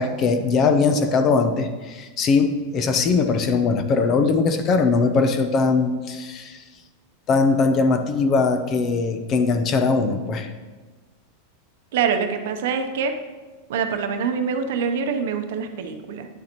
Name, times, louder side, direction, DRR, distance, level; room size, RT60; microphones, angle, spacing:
voice 1, 0.0-6.6 7.3-10.5, left 4 dB, 30° left, 9 dB, 0.5 m, -20 dB
voice 2, 11.9-13.1 13.7-16.3, right 6 dB, 70° right, 6 dB, 0.8 m, -25 dB
9.6 x 6.7 x 3.0 m, 1.3 s
supercardioid pair, 160°, 0 cm